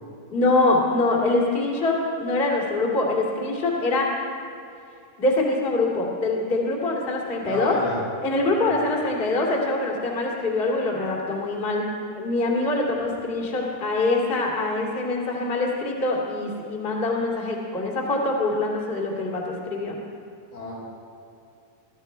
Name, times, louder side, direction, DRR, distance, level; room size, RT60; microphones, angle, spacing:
voice 1, 0.3-4.1 5.2-7.7 8.2-11.9 12.1-20.0, left 2 dB, 20° left, -2 dB, 1.8 m, -24 dB
voice 2, 7.5-8.0 8.6-8.7 20.5-20.7, left 2 dB, 90° left, -6 dB, 6.9 m, -30 dB
22.5 x 13.0 x 4.5 m, 2.5 s
omnidirectional pair, 4.3 m